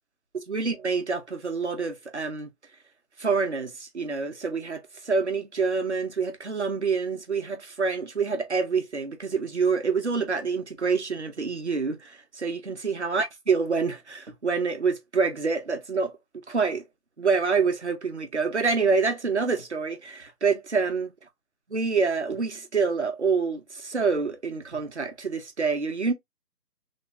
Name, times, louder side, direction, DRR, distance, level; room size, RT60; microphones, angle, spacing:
voice 1, 0.3-2.5 3.2-16.1 16.5-16.8 17.2-21.1 21.7-26.1, right 4 dB, 45° right, 0.5 m, -27 dB
3.3 x 2.2 x 2.6 m
figure-of-eight pair, 155°, 49 cm